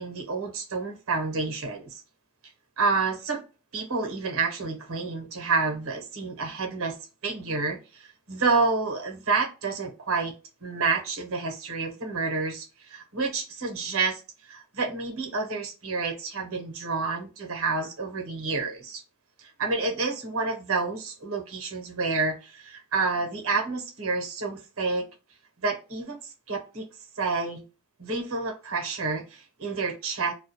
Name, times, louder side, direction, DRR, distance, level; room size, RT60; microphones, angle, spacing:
voice 1, 0.0-2.0 2.8-3.4 3.7-7.0 7.2-10.3 10.6-19.0 19.4-25.1 25.6-26.9 27.1-27.6 28.0-30.3, right 4 dB, 75° right, 0.7 m, -29 dB
2.2 x 2.0 x 2.7 m
head